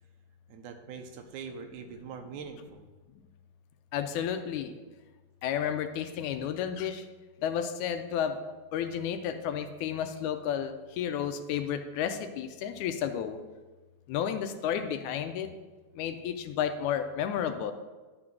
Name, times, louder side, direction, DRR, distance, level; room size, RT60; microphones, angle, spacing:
voice 1, 0.5-2.9, right 6 dB, 80° right, 6 dB, 2.1 m, -43 dB
voice 2, 3.9-4.7 5.4-7.1 7.4-8.4 8.7-13.4 14.1-15.5 16.0-17.7, left 9 dB, 80° left, 8 dB, 1.9 m, -32 dB
11.0 x 3.8 x 6.0 m, 1.3 s
omnidirectional pair, 3.6 m